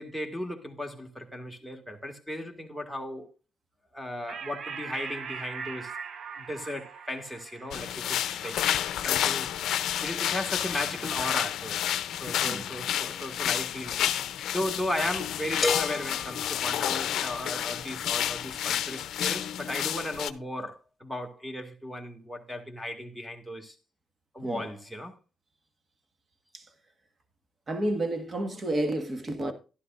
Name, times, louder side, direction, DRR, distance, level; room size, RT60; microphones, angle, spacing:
voice 1, 0.0-3.3 3.9-5.9 6.4-8.6 9.0-9.5 10.0-11.8 12.2-14.0 14.5-23.8 24.3-25.2, left 1 dB, 5° right, 2.1 m, -36 dB
sound 1, 4.3-11.2, right 6 dB, 60° right, 0.9 m, -42 dB
sound 2, 7.7-20.3, left 11 dB, 75° left, 0.6 m, -30 dB
sound 3, 15.6-17.5, left 3 dB, 25° left, 0.7 m, -33 dB
voice 2, 27.7-29.5, right 1 dB, 30° right, 1.7 m, -30 dB
12.0 x 11.0 x 2.5 m
cardioid pair, 90°, 0 cm